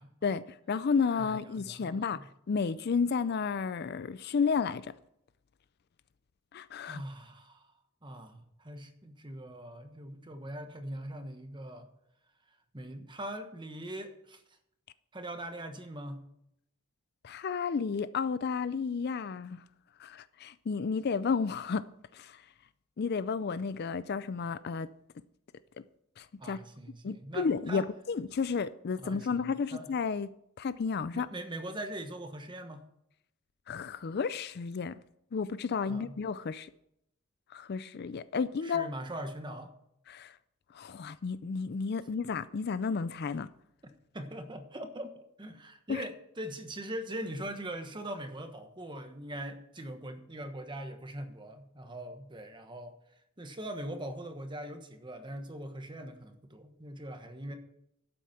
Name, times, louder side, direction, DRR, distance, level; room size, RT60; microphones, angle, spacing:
voice 1, 0.2-2.2 2.5-4.9 6.5-7.0 17.2-19.6 20.0-21.9 22.1-22.4 23.0-24.9 26.2-26.6 27.0-30.3 30.6-31.3 33.7-35.0 35.3-36.7 37.5-38.9 40.1-40.4 40.7-43.5 45.9-46.0, left 5 dB, 50° left, 0.4 m, -32 dB
voice 2, 1.2-2.3 6.9-7.6 8.0-11.9 12.7-14.4 15.1-16.2 26.4-27.9 29.0-29.9 31.1-32.9 35.8-36.2 38.6-39.7 44.1-52.9 53.4-57.6, right 1 dB, 20° right, 1.2 m, -41 dB
12.0 x 8.3 x 5.8 m
head